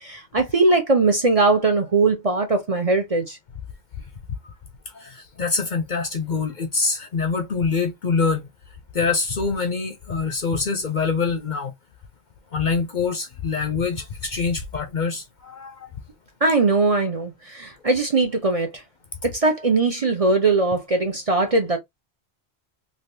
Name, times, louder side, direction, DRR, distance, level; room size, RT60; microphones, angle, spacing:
voice 1, 0.0-3.4 16.4-18.8 19.2-21.8, right 3 dB, 40° right, 0.7 m, -20 dB
voice 2, 4.9-8.5 8.9-11.7 12.5-15.9, left 4 dB, 50° left, 0.7 m, -25 dB
3.3 x 2.6 x 2.7 m
omnidirectional pair, 1.1 m